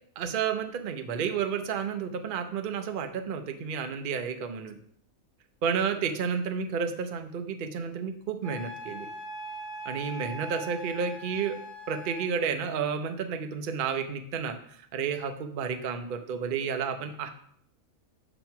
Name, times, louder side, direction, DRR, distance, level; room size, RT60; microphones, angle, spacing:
voice 1, 0.2-4.8 5.6-9.1 9.9-11.6 11.9-17.3, right 6 dB, 55° right, 7 dB, 0.6 m, -31 dB
Wind instrument woodwind instrument, 8.4-12.3, right 1 dB, 30° right, 1.3 m, -41 dB
7.1 x 3.0 x 5.8 m, 0.65 s
omnidirectional pair, 1.5 m